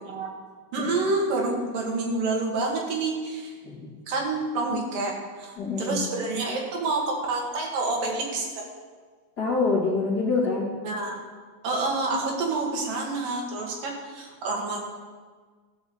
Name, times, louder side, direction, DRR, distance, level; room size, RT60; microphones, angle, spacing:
voice 1, 0.7-3.5 4.1-8.6 10.8-11.2 11.6-14.8, right 3 dB, 70° right, -1 dB, 3.6 m, -28 dB
voice 2, 5.6-6.0 9.4-10.7, left 3 dB, 30° left, -4 dB, 2.4 m, -25 dB
14.0 x 6.2 x 7.1 m, 1.5 s
omnidirectional pair, 4.0 m